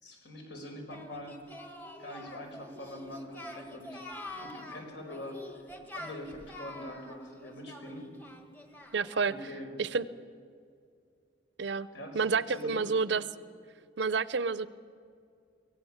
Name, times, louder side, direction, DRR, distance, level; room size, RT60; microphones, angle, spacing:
voice 1, 0.0-1.4 2.0-4.0 4.3-5.4 5.9-8.1 9.2-9.7 11.9-12.9, left 1 dB, 65° left, 3 dB, 4.9 m, -44 dB
Singing, 0.9-9.2, left 1 dB, 10° left, 1.4 m, -46 dB
voice 2, 8.9-9.3 9.8-10.1 11.6-11.9 12.1-13.2 14.0-14.7, right 4 dB, 65° right, 17 dB, 0.6 m, -29 dB
24.0 x 17.5 x 7.2 m, 2.3 s
head